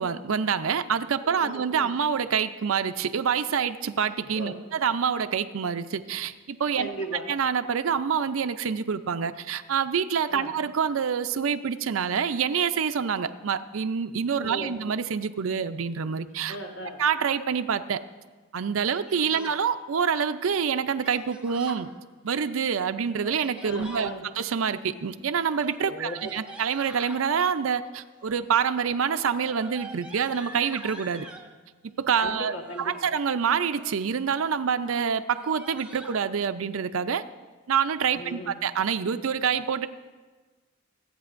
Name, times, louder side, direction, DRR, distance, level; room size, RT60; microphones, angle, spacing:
voice 1, 0.0-6.9 7.3-16.6 17.0-18.0 18.5-21.9 22.2-24.1 24.4-31.3 31.8-37.2 37.7-39.9, right 7 dB, 80° right, 11 dB, 0.5 m, -26 dB
voice 2, 1.2-1.9 4.4-4.6 6.8-7.3 10.3-10.5 14.4-14.8 16.5-17.0 19.3-19.5 23.6-24.3 25.9-26.3 32.2-33.1 38.1-38.6, right 1 dB, 65° left, 2 dB, 1.4 m, -37 dB
Yell, 18.8-19.6 21.0-21.9 23.0-24.2 25.5-27.3 28.1-28.5 28.8-31.5 32.4-33.0 33.5-34.1 34.5-34.6 34.8-35.0 35.3-36.2, right 1 dB, 5° right, 0.8 m, -45 dB
25.5 x 8.8 x 2.5 m, 1.3 s
head